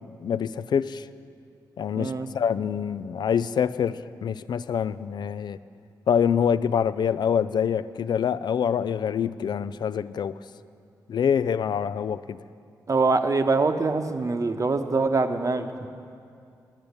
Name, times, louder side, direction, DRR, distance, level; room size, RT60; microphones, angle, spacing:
voice 1, 0.1-1.1 1.8-5.6 6.1-10.4 11.1-12.4, left 7 dB, 65° left, 15 dB, 0.4 m, -25 dB
voice 2, 1.9-2.3 12.9-15.9, right 3 dB, 45° right, 7 dB, 0.9 m, -24 dB
10.5 x 8.6 x 8.0 m, 2.4 s
supercardioid pair, 45°, 8 cm